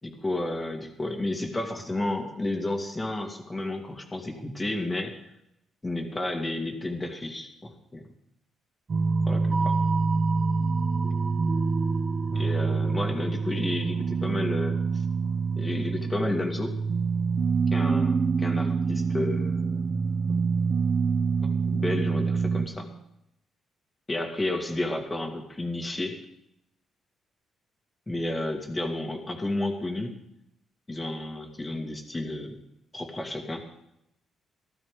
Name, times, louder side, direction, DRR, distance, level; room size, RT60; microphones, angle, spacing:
voice 1, 0.0-5.1 5.8-8.1 9.3-9.8 12.3-15.0 15.6-16.8 17.7-19.9 21.4-22.9 24.1-26.2 28.1-30.1 30.9-32.6 32.9-33.6, left 2 dB, 20° left, 3 dB, 2.2 m, -31 dB
sound 1, 8.9-22.7, right 4 dB, 40° right, 1.0 m, -26 dB
16.0 x 12.5 x 3.7 m, 0.82 s
cardioid pair, 90°, 0 cm